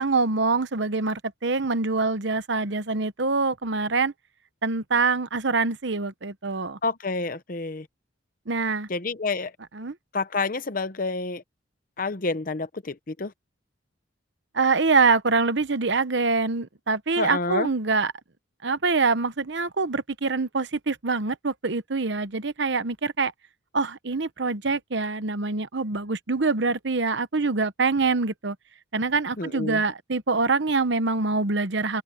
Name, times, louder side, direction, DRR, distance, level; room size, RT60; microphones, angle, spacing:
voice 1, 0.0-4.1 4.6-6.8 8.5-8.9 9.7-9.9 14.5-18.1 18.6-23.3 23.7-28.6 28.9-32.0, right 4 dB, 60° right, 1.0 m, -25 dB
voice 2, 6.8-7.9 8.9-9.5 10.1-11.4 12.0-13.3 17.2-17.7 29.4-29.8, left 3 dB, 45° left, 0.8 m, -29 dB
head